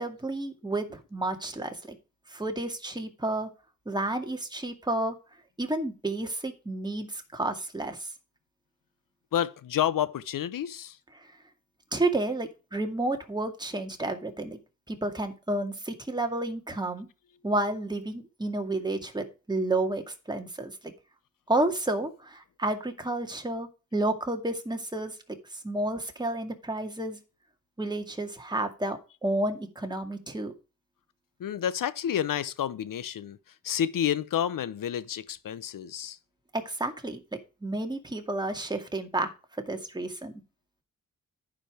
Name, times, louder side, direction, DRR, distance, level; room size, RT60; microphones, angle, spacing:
voice 1, 0.0-2.0 2.3-3.5 3.9-5.2 5.6-8.1 11.2-11.3 11.9-14.6 14.9-17.1 17.4-20.9 21.5-25.2 25.5-27.2 27.8-30.5 36.5-37.2 37.6-39.3 39.7-40.3, right 2 dB, 15° right, 2.1 m, -31 dB
voice 2, 9.3-11.0 31.4-33.4 33.6-36.2, left 10 dB, 75° left, 0.9 m, -29 dB
10.5 x 5.1 x 4.9 m
cardioid pair, 50°, 33 cm